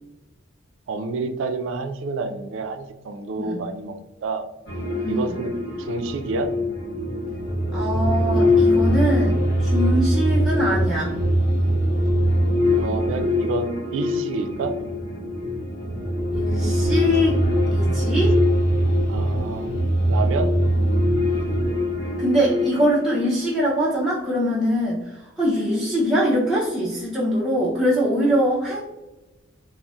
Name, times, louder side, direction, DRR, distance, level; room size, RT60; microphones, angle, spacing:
voice 1, 0.9-4.5 5.1-6.5 12.7-14.7 19.1-19.7 20.1-20.5, right 4 dB, 75° right, 8 dB, 0.3 m, -29 dB
sound 1, 4.7-23.6, equal, 50° left, 0.7 m, -22 dB
voice 2, 5.0-5.4 7.7-11.2 16.3-17.4 17.7-18.4 22.2-28.8, equal, ahead, -8 dB, 0.4 m, -23 dB
3.8 x 2.0 x 2.2 m, 1.1 s
head